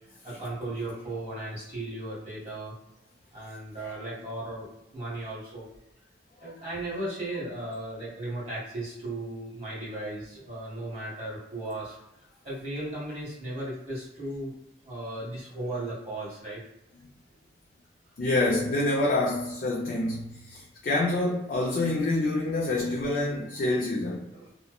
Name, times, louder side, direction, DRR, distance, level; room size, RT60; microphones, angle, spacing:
voice 1, 0.2-2.7 3.3-4.7 4.9-5.7 6.4-14.5 14.8-16.6 24.3-24.5, right 1 dB, 35° right, -8 dB, 1.3 m, -36 dB
voice 2, 18.2-24.2, left 2 dB, 50° left, -2 dB, 0.3 m, -27 dB
2.8 x 2.0 x 2.2 m, 0.88 s
head